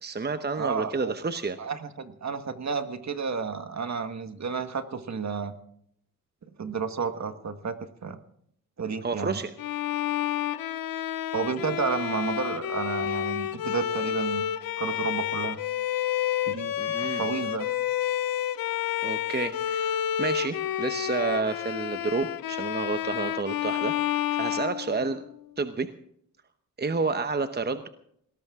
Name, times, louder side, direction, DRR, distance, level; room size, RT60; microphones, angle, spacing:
voice 1, 0.0-1.6 9.0-9.5 16.8-17.2 19.0-25.2 25.6-25.9 26.8-27.9, right 4 dB, 30° right, 9 dB, 0.9 m, -30 dB
voice 2, 0.6-1.1 1.6-5.6 6.6-8.2 8.8-9.4 11.3-14.4 14.8-15.6 16.5-17.6, right 5 dB, 55° right, 9 dB, 1.5 m, -31 dB
Bowed string instrument, 9.6-25.5, left 11 dB, 85° left, 0.7 m, -30 dB
19.5 x 18.0 x 3.7 m, 0.69 s
cardioid pair, 75°, 34 cm